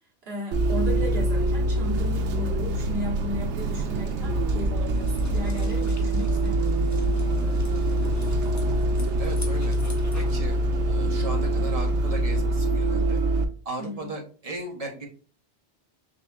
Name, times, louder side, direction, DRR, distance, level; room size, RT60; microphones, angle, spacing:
voice 1, 0.2-8.3 13.8-14.1, equal, 60° right, 1.5 m, -36 dB
Bus, 0.5-13.4, right 1 dB, 90° right, 0.9 m, -24 dB
sound 1, 4.9-10.4, left 2 dB, 20° left, 0.7 m, -46 dB
voice 2, 9.2-9.8 10.1-10.6 10.9-13.2 13.6-15.1, right 2 dB, 35° right, 1.0 m, -36 dB
5.2 x 3.4 x 2.4 m
omnidirectional pair, 1.2 m